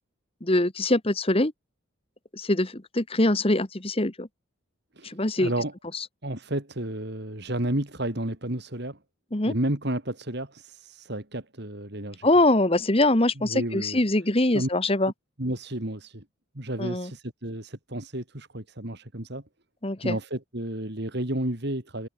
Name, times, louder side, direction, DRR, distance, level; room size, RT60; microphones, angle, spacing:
voice 1, 0.4-1.5 2.3-4.3 5.0-5.5 5.9-6.0 9.3-9.5 12.2-15.1 16.8-17.1 19.8-20.2, left 1 dB, 30° left, 1.5 m, -23 dB
voice 2, 5.0-5.7 6.2-9.0 9.5-12.3 13.4-14.0 14.5-14.7 15.4-16.2 16.5-19.4 20.0-22.1, right 1 dB, 55° right, 3.1 m, -31 dB
head